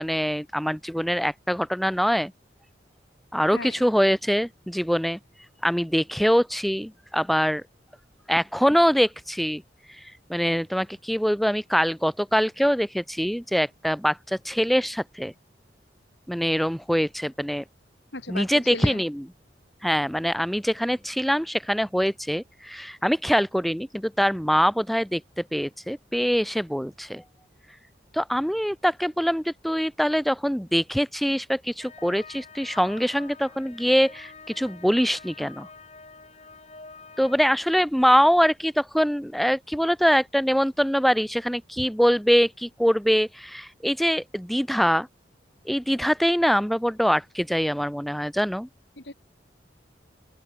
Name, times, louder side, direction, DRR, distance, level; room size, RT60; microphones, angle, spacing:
voice 1, 0.0-2.3 3.3-5.2 5.6-7.6 8.3-9.6 10.3-15.3 16.3-17.6 18.3-19.3 19.8-25.2 25.5-27.2 28.1-35.7 37.2-45.1 45.7-48.7, equal, ahead, 0.7 m, -23 dB
voice 2, 18.1-19.0 49.0-49.1, left 2 dB, 75° left, 4.0 m, -36 dB
sound 1, 31.8-37.4, left 4 dB, 35° left, 3.9 m, -47 dB
open air
head